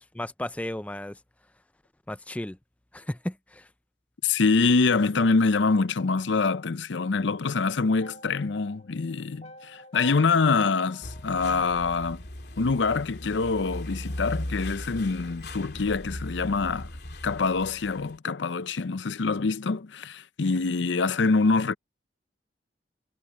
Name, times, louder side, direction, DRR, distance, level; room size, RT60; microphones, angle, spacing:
voice 1, 0.2-1.2 2.1-2.6 2.9-3.7, left 1 dB, 10° left, 0.4 m, -34 dB
voice 2, 4.2-12.2 12.6-16.9 17.2-21.7, left 4 dB, 85° left, 0.6 m, -25 dB
sound 1, 8.0-12.2, left 3 dB, 35° left, 1.5 m, -47 dB
sound 2, 11.0-18.2, left 1 dB, 65° left, 3.0 m, -38 dB
head